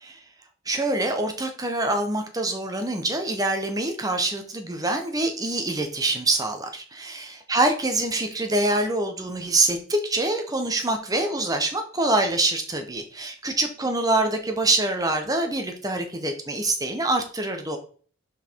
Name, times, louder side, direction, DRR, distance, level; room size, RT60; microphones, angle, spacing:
voice 1, 0.7-17.8, right 2 dB, 20° right, 5 dB, 1.0 m, -25 dB
5.8 x 4.6 x 4.6 m, 0.43 s
head